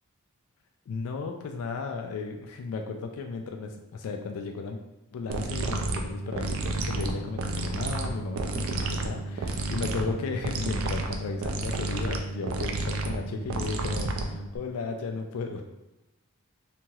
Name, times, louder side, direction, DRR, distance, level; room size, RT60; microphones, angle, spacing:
voice 1, 0.9-4.8 5.1-15.6, left 4 dB, 80° left, 4 dB, 0.3 m, -35 dB
sound 1, 5.3-14.6, right 2 dB, 65° right, 0.3 m, -31 dB
2.8 x 2.8 x 2.3 m, 0.96 s
head